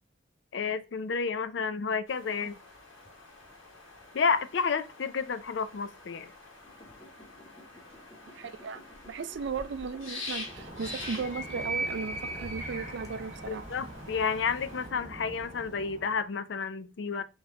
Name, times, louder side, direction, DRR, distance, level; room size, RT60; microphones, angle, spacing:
voice 1, 0.5-2.6 4.1-6.3 13.5-17.2, left 5 dB, 60° left, 0.4 m, -31 dB
sound 1, 2.1-14.9, left 2 dB, 80° left, 1.6 m, -46 dB
sound 2, 6.6-12.6 13.0-13.1, left 1 dB, 15° left, 0.7 m, -54 dB
voice 2, 8.3-13.7, right 5 dB, 60° right, 0.4 m, -36 dB
Animal, 10.4-16.2, right 2 dB, 40° right, 1.3 m, -39 dB
4.1 x 3.1 x 3.7 m
head